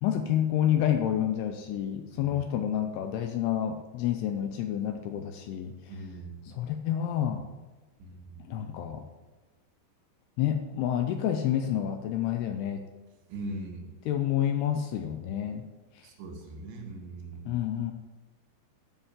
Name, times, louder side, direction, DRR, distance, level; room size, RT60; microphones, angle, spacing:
voice 1, 0.0-5.7 6.5-7.5 8.5-9.1 10.4-12.8 14.1-15.7 17.5-17.9, left 10 dB, 85° left, 6 dB, 2.4 m, -29 dB
voice 2, 5.9-6.4 8.0-8.5 13.3-13.9 16.0-17.6, right 2 dB, 85° right, 2 dB, 4.1 m, -41 dB
11.0 x 5.7 x 7.6 m, 1.2 s
omnidirectional pair, 5.2 m